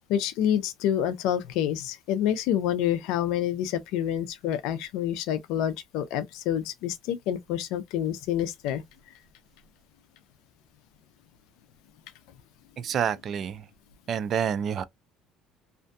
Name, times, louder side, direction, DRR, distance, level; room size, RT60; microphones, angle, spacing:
voice 1, 0.1-8.8, left 10 dB, 80° left, 0.4 m, -28 dB
voice 2, 12.8-13.7 14.1-14.8, right 8 dB, 45° right, 0.4 m, -28 dB
2.5 x 2.2 x 2.5 m
cardioid pair, 115°, 0 cm